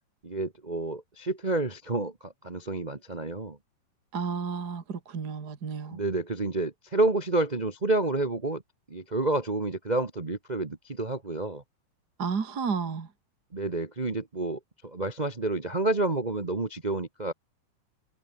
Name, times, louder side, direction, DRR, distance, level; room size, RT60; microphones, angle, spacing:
voice 1, 0.2-3.6 5.9-8.6 8.9-11.6 13.5-17.3, right 2 dB, 75° right, 0.4 m, -29 dB
voice 2, 4.1-6.0 12.2-13.1, right 5 dB, 35° right, 2.4 m, -32 dB
omnidirectional pair, 3.3 m